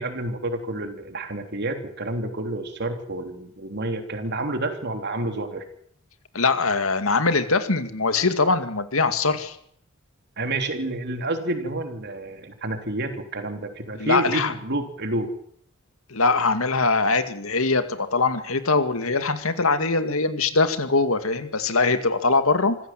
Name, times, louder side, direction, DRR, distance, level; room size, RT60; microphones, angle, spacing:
voice 1, 0.0-5.6 10.4-15.3, right 2 dB, 55° right, 6 dB, 3.5 m, -29 dB
voice 2, 6.3-9.6 13.9-14.5 16.1-22.8, left 3 dB, 85° left, 9 dB, 2.2 m, -22 dB
25.5 x 15.5 x 7.6 m, 0.67 s
head